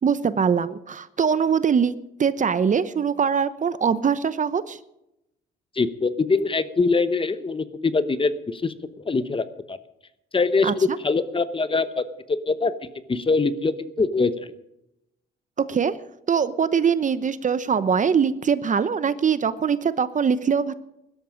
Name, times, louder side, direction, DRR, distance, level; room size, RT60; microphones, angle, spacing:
voice 1, 0.0-1.9 2.2-4.8 10.6-11.0 15.7-16.0 16.3-20.7, right 6 dB, 40° right, 14 dB, 0.8 m, -22 dB
voice 2, 5.7-9.8 10.3-12.7 13.1-14.5, left 4 dB, 25° left, 12 dB, 1.0 m, -23 dB
16.5 x 12.5 x 5.1 m, 0.86 s
cardioid pair, 90°, 20 cm